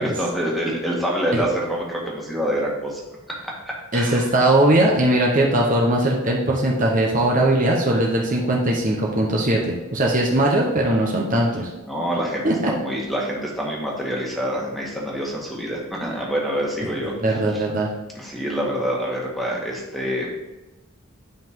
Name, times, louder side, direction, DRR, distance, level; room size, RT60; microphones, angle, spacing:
voice 1, 0.0-3.0 3.3-4.3 11.9-17.6 18.1-20.3, equal, ahead, -3 dB, 1.7 m, -26 dB
voice 2, 3.9-11.7 12.4-12.7 17.2-17.9, right 1 dB, 40° right, -2 dB, 1.0 m, -20 dB
10.5 x 5.6 x 3.7 m, 1.1 s
head